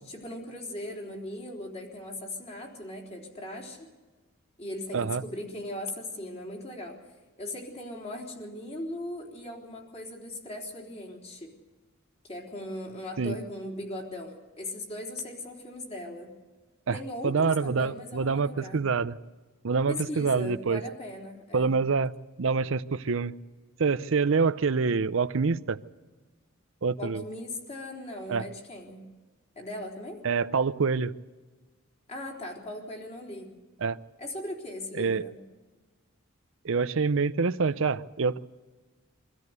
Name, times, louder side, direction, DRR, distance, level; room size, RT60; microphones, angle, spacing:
voice 1, 0.1-3.9 4.6-7.0 7.4-11.5 12.3-16.3 16.9-18.8 19.9-21.7 27.0-29.0 29.6-30.2 32.1-33.5 34.2-35.4, left 1 dB, 30° left, 0 dB, 3.7 m, -39 dB
voice 2, 17.2-19.2 19.6-20.8 21.5-22.1 22.4-23.3 23.8-25.8 26.8-27.2 28.3-28.5 30.2-31.1 33.8-34.0 34.9-35.2 36.6-38.4, right 4 dB, 65° right, 14 dB, 0.6 m, -26 dB
24.0 x 13.5 x 8.2 m, 1.3 s
head